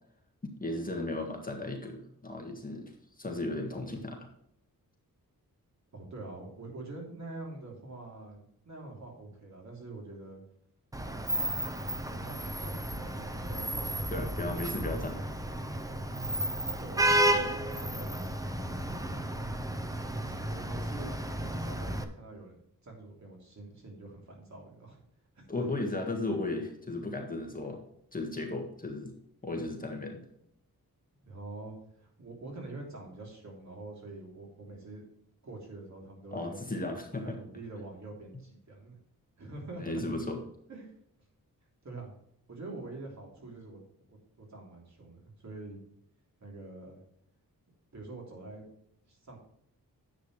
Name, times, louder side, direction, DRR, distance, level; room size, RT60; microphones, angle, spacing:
voice 1, 0.4-2.9 3.2-4.3 14.1-15.3 25.5-27.8 28.1-29.1 29.4-30.2 36.3-37.4 39.8-40.4, left 2 dB, 25° left, 1 dB, 1.7 m, -35 dB
voice 2, 5.9-10.4 11.0-11.7 12.0-13.9 14.4-14.6 16.8-19.3 20.2-25.0 25.3-25.7 31.2-35.0 35.4-36.6 37.2-39.0 39.4-40.0 40.7-40.9 41.8-42.1 42.5-43.8 44.1-45.8 46.4-47.0 47.9-48.6 49.1-49.4, right 2 dB, 50° right, -1 dB, 3.3 m, -45 dB
Vehicle horn car horn honking / Traffic noise roadway noise, 10.9-22.0, right 1 dB, 10° right, 0.7 m, -32 dB
10.5 x 8.2 x 3.3 m, 0.72 s
wide cardioid pair, 145°, 36 cm